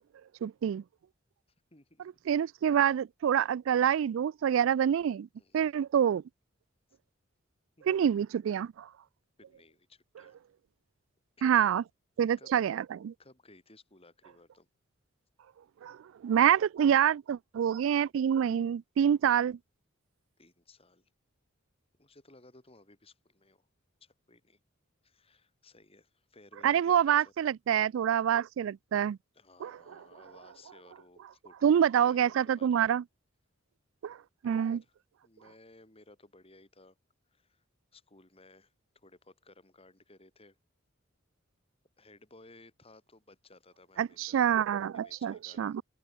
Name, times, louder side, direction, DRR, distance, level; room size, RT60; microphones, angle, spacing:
voice 1, 0.4-0.8 2.3-5.3 5.5-6.2 7.9-8.9 11.4-11.8 12.2-13.1 15.8-16.0 16.2-19.6 26.6-29.2 29.6-29.7 31.6-33.0 34.0-34.2 34.4-34.8 44.0-45.8, right 9 dB, 80° right, 0.3 m, -26 dB
voice 2, 1.7-2.2 5.4-5.8 7.8-8.2 9.4-10.4 11.4-11.5 12.4-12.5 13.2-14.7 20.4-21.1 22.0-23.7 24.0-24.6 25.0-27.5 29.3-32.8 34.4-34.9 35.2-37.0 37.3-37.6 37.9-40.6 42.0-44.4 44.9-45.8, left 2 dB, 30° left, 6.0 m, -58 dB
open air
head